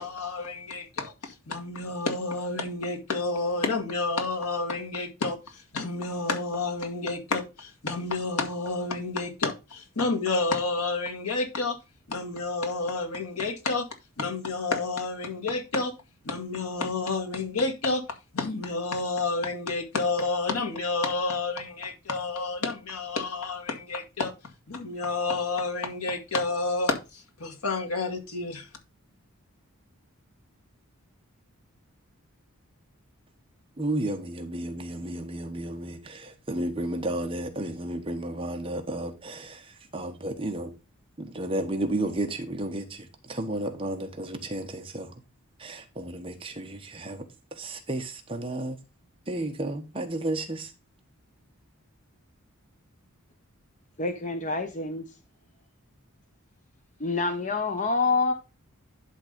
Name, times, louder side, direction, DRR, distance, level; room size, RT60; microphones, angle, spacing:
voice 1, 0.0-11.8 12.1-13.9 14.2-15.9 16.2-18.0 18.3-24.3 24.7-28.7, left 3 dB, 85° left, 2.0 m, -30 dB
voice 2, 33.8-39.6 39.9-40.7 41.2-45.1 45.6-47.2 47.6-48.8 49.3-50.7, right 1 dB, 25° right, 1.1 m, -32 dB
voice 3, 54.0-55.0 57.0-58.3, left 3 dB, 35° left, 0.8 m, -26 dB
11.0 x 3.7 x 5.1 m
head